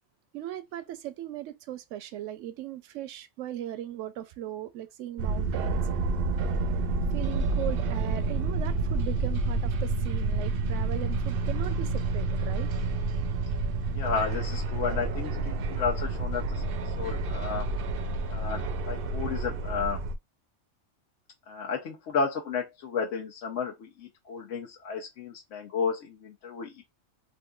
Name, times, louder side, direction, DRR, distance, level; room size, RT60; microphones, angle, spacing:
voice 1, 0.3-5.8 7.1-12.7, right 12 dB, 85° right, 0.9 m, -38 dB
sound 1, 5.2-20.1, right 3 dB, 60° right, 0.6 m, -29 dB
voice 2, 13.9-17.7 18.3-20.0 21.5-26.8, left 5 dB, 85° left, 1.1 m, -32 dB
3.7 x 2.6 x 2.3 m
omnidirectional pair, 1.2 m